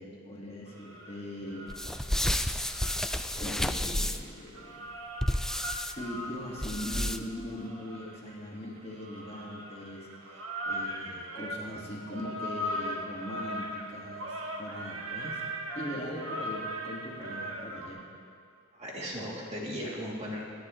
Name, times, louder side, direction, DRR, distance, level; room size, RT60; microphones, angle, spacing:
voice 1, 0.0-1.8 3.4-4.9 5.9-15.4 15.7-18.1, equal, 30° left, -3 dB, 1.8 m, -41 dB
sound 1, 0.7-2.2 2.6-17.9, equal, 90° right, 1.5 m, -39 dB
sound 2, 1.7-4.4 5.2-5.9 6.6-7.4, left 1 dB, 5° left, 0.3 m, -31 dB
voice 2, 18.7-20.4, equal, 35° right, -4 dB, 2.8 m, -37 dB
26.5 x 10.5 x 3.1 m, 2.2 s
head